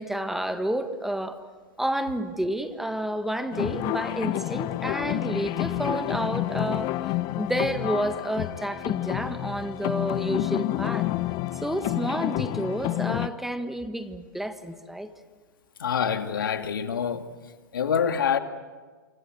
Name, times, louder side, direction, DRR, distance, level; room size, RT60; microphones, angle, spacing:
voice 1, 0.0-1.4 1.8-6.9 7.4-11.1 11.6-15.1, right 1 dB, 5° right, 9 dB, 1.6 m, -30 dB
sound 1, 3.5-13.3, left 16 dB, 40° left, 0.8 m, -29 dB
voice 2, 15.8-17.2 17.7-18.4, left 7 dB, 85° left, 7 dB, 2.4 m, -26 dB
27.5 x 25.5 x 7.9 m, 1.4 s
hypercardioid pair, 125°, 11 cm